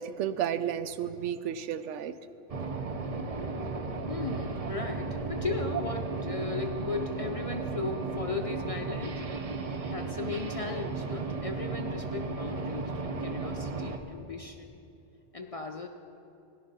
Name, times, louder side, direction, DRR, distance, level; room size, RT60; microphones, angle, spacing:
voice 1, 0.0-2.1, right 9 dB, 85° right, 12 dB, 0.9 m, -32 dB
sound 1, 2.5-14.0, right 3 dB, 40° right, 0.6 m, -35 dB
voice 2, 4.1-9.2 9.9-14.8 15.3-15.9, left 4 dB, 45° left, 3 dB, 0.5 m, -36 dB
17.0 x 11.0 x 4.0 m, 2.8 s
omnidirectional pair, 1.2 m